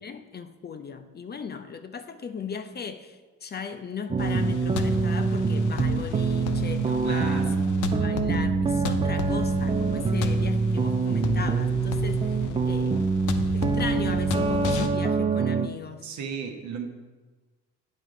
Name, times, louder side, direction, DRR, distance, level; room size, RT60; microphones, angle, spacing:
voice 1, 0.0-13.0 13.5-16.1, left 6 dB, 35° left, 9 dB, 0.5 m, -37 dB
sound 1, 4.1-15.7, right 4 dB, 20° right, 0.3 m, -25 dB
sound 2, 4.2-14.9, left 8 dB, 85° left, 0.6 m, -34 dB
voice 2, 7.0-7.7 16.0-16.9, right 6 dB, 70° right, 5 dB, 1.0 m, -35 dB
9.3 x 3.9 x 4.9 m, 1.3 s
cardioid pair, 90°, 30 cm